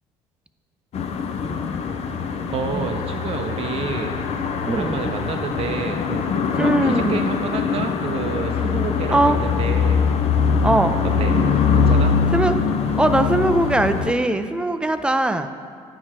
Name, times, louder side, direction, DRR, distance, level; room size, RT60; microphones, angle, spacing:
sound 1, 0.9-14.1, left 5 dB, 55° left, 0.5 m, -22 dB
voice 1, 2.5-4.2 4.7-6.2 6.5-10.0 11.0-11.3 11.7-12.1, right 5 dB, 50° right, 4 dB, 0.6 m, -29 dB
voice 2, 4.7-5.0 6.6-7.3 9.1-9.4 10.6-10.9 12.3-12.5 13.0-15.5, right 1 dB, 5° right, 9 dB, 0.4 m, -20 dB
9.7 x 4.8 x 2.9 m, 2.1 s
supercardioid pair, 75°, 13 cm